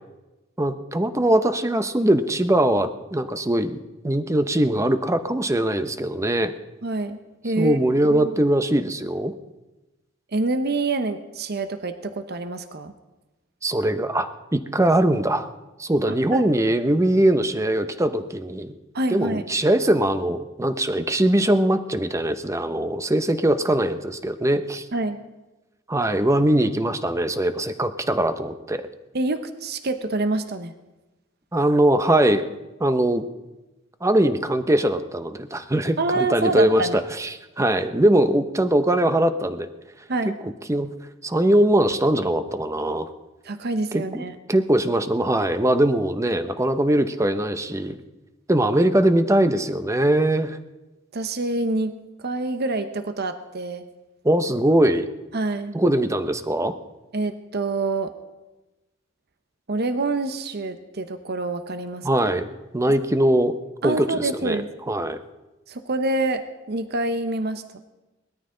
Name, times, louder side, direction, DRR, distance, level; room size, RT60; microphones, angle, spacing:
voice 1, 0.6-3.8 4.0-6.5 7.6-9.3 13.6-15.5 15.8-18.7 19.1-24.9 25.9-28.8 31.5-32.5 32.8-33.2 34.0-39.7 40.4-40.9 41.2-43.1 44.1-44.2 44.5-48.0 48.5-50.6 54.2-55.1 55.7-56.7 62.0-62.5 62.7-63.5 63.8-64.6 64.9-65.2, right 1 dB, 15° right, 10 dB, 0.7 m, -21 dB
voice 2, 6.8-7.2 7.4-7.8 8.1-8.4 10.3-12.9 16.1-16.6 18.9-19.5 24.9-25.2 29.1-30.7 36.0-37.0 40.1-40.3 43.4-44.4 51.1-51.9 52.2-53.8 55.3-55.7 57.1-58.1 59.7-62.1 63.8-64.7 65.7-66.4 66.7-67.8, right 2 dB, 55° right, 9 dB, 0.9 m, -26 dB
19.5 x 13.0 x 3.8 m, 1.1 s
head